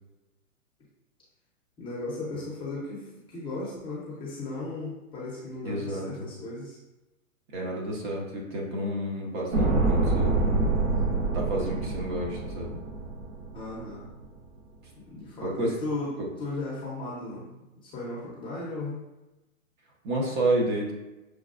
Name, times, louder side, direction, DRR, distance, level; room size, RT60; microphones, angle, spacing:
voice 1, 1.8-6.8 13.5-14.1 14.9-16.1 16.4-19.0, left 2 dB, 10° left, -7 dB, 0.7 m, -36 dB
voice 2, 5.6-6.1 7.5-10.4 11.3-12.7 15.4-15.7 20.0-20.9, right 1 dB, 35° right, -1 dB, 0.8 m, -30 dB
Space-Time Capsule Materialises, 9.5-13.8 14.1-14.2, right 3 dB, 60° right, 1.0 m, -26 dB
6.2 x 2.3 x 2.4 m, 1.0 s
hypercardioid pair, 135°, 42 cm